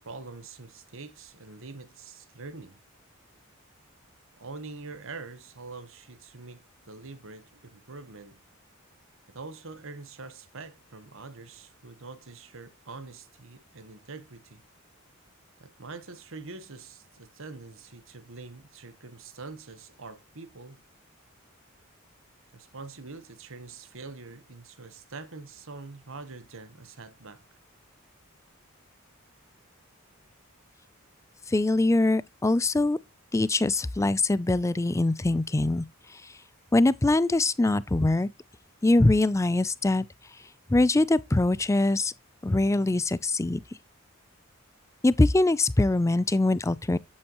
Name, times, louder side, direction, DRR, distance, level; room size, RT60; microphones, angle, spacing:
voice 1, 0.0-2.8 4.4-8.4 9.3-14.6 15.6-20.8 22.5-27.4, right 3 dB, 65° right, 1.2 m, -44 dB
voice 2, 31.5-33.0 33.3-35.9 36.7-38.3 38.8-40.1 40.7-42.1 42.4-43.6 45.0-47.0, left 2 dB, 15° left, 0.4 m, -23 dB
8.7 x 7.7 x 3.0 m
head